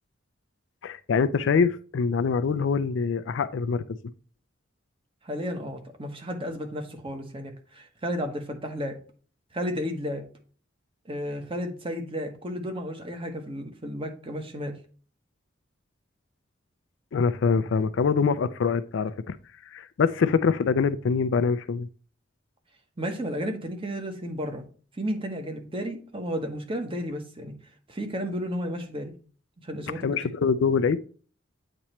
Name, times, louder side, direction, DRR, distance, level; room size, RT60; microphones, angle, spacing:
voice 1, 0.8-4.0 17.1-19.4 19.7-21.9 30.0-31.0, left 5 dB, 65° left, 0.4 m, -24 dB
voice 2, 5.2-9.0 9.5-10.3 11.1-14.7 23.0-24.6 25.0-27.6 27.9-29.1 29.6-30.1, equal, 25° right, 1.0 m, -33 dB
8.5 x 3.0 x 4.3 m
head